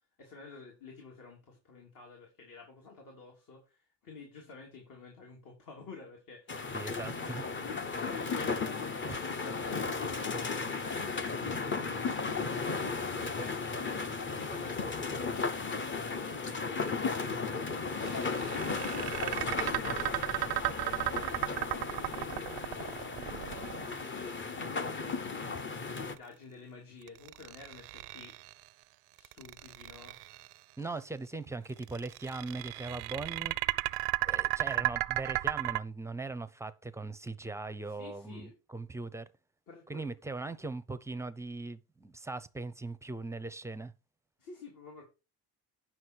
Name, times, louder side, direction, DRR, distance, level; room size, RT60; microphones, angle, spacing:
voice 1, 0.2-6.7 7.0-10.9 11.3-13.0 13.3-15.5 15.8-17.6 18.0-22.9 23.9-28.3 29.1-30.2 37.9-38.5 39.7-40.1 44.4-45.0, left 4 dB, 55° left, 3.2 m, -51 dB
sound 1, 6.5-26.2, left 4 dB, 30° left, 0.9 m, -35 dB
voice 2, 6.7-7.4 9.1-9.2 30.8-33.6 34.2-39.3 39.9-43.9, right 3 dB, 5° right, 0.5 m, -40 dB
sound 2, 18.0-24.3 27.1-28.6 29.2-30.5 31.8-35.8, right 20 dB, 85° right, 0.5 m, -34 dB
9.6 x 6.1 x 4.5 m
cardioid pair, 125°, 38 cm